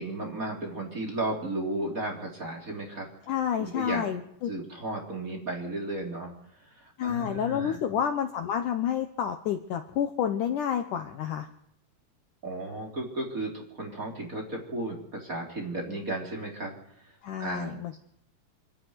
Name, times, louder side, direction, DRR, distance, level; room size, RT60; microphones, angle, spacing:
voice 1, 0.0-3.1 3.6-4.1 4.5-6.3 6.7-7.8 12.4-16.7 17.4-17.7, right 2 dB, 20° right, 1 dB, 3.5 m, -34 dB
voice 2, 3.3-4.5 7.0-11.5 17.2-18.0, left 9 dB, 70° left, 7 dB, 2.2 m, -29 dB
26.5 x 10.5 x 9.7 m, 0.76 s
omnidirectional pair, 4.7 m